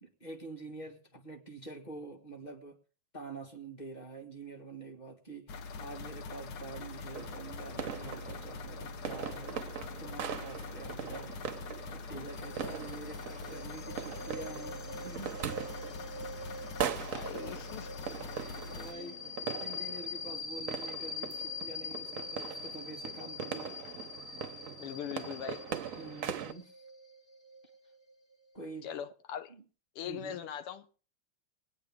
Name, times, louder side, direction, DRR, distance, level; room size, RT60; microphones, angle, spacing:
voice 1, 0.0-2.8 3.1-9.6 10.0-11.4 11.9-15.4 16.2-16.3 18.3-23.8 25.9-26.7 28.5-28.9 29.5-29.6 30.0-30.4, right 3 dB, 20° left, 1.6 m, -47 dB
sound 1, 5.5-18.9, left 4 dB, 60° left, 1.1 m, -43 dB
sound 2, 7.1-26.5, right 8 dB, 60° right, 0.8 m, -41 dB
sound 3, 12.3-28.6, left 3 dB, 45° left, 0.3 m, -44 dB
voice 2, 16.8-17.9 18.9-19.4 24.8-25.6 28.8-29.5 30.0-30.9, left 9 dB, 90° left, 1.8 m, -41 dB
21.0 x 9.3 x 3.6 m
omnidirectional pair, 2.4 m